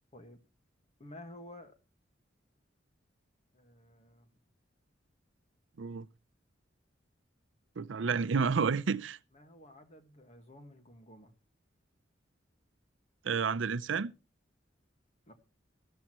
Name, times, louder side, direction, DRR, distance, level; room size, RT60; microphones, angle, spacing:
voice 1, 1.0-1.7 3.5-4.3 9.3-11.3 15.3-15.4, left 1 dB, 35° left, 1.7 m, -52 dB
voice 2, 7.8-9.2 13.2-14.1, right 5 dB, 85° right, 0.6 m, -30 dB
14.0 x 14.0 x 3.1 m
head